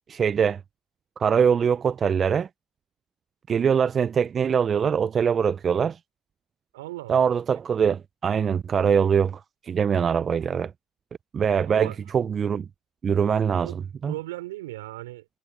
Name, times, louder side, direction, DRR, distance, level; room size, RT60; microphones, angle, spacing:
voice 1, 0.1-0.6 1.2-2.5 3.5-6.0 7.1-10.7 11.3-12.7 13.0-13.7 14.0-14.1, right 7 dB, 40° right, 0.3 m, -23 dB
voice 2, 6.7-7.3 11.7-12.0 13.5-13.8 14.1-15.3, right 17 dB, 85° right, 3.9 m, -37 dB
hypercardioid pair, 70°, 0 cm